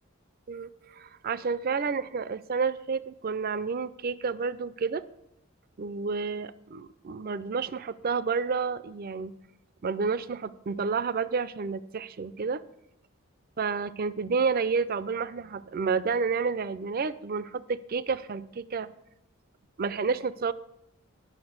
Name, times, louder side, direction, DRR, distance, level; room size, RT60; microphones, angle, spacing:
voice 1, 0.5-5.0 5.8-9.3 9.8-12.6 13.6-18.9 19.8-20.5, right 5 dB, 45° right, 17 dB, 0.4 m, -30 dB
10.5 x 6.4 x 7.8 m, 0.80 s
head